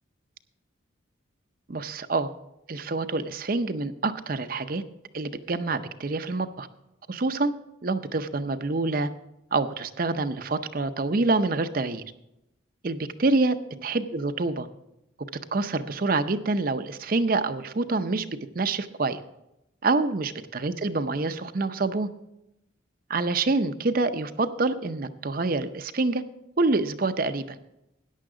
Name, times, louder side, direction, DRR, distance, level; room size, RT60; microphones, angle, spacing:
voice 1, 1.7-2.3 2.7-4.8 5.1-6.7 7.1-7.5 7.8-9.1 9.5-12.0 12.8-13.6 13.8-14.7 15.5-18.3 18.5-19.2 19.8-22.1 23.1-26.2 26.6-27.6, right 3 dB, 45° right, 10 dB, 0.6 m, -26 dB
14.0 x 10.0 x 3.8 m, 0.87 s
head